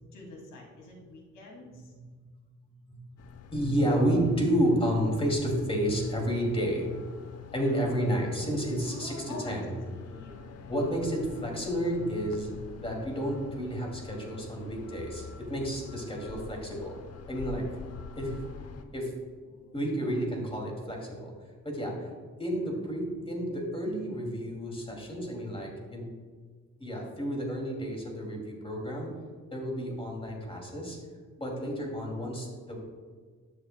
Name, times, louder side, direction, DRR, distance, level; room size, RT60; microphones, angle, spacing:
voice 1, 0.1-1.9 7.6-7.9 8.8-9.6 9.9-10.9 19.5-19.8, left 2 dB, 85° left, -1 dB, 2.5 m, -46 dB
voice 2, 1.9-2.2 2.9-3.0 3.5-7.0 7.5-9.7 10.7-12.5 12.8-16.9 17.3-17.7 18.2-18.4 18.9-19.1 19.7-21.3 21.6-22.1 22.4-26.1 26.8-29.1 29.5-31.0 31.4-32.8, equal, 20° left, 0 dB, 2.4 m, -30 dB
sound 1, 3.2-18.8, left 6 dB, 55° left, 0.8 m, -46 dB
12.5 x 7.0 x 2.2 m, 1.5 s
cardioid pair, 90°, 30 cm